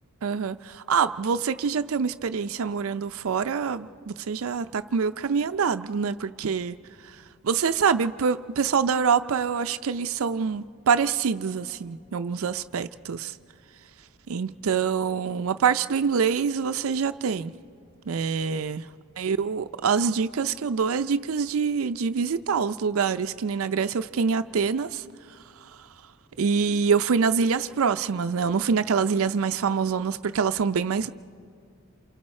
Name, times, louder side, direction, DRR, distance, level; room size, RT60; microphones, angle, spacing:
voice 1, 0.2-6.7 7.4-13.3 14.3-17.5 18.1-18.8 19.2-25.0 26.4-31.1, right 6 dB, 75° right, 0.5 m, -25 dB
27.5 x 27.5 x 4.3 m
head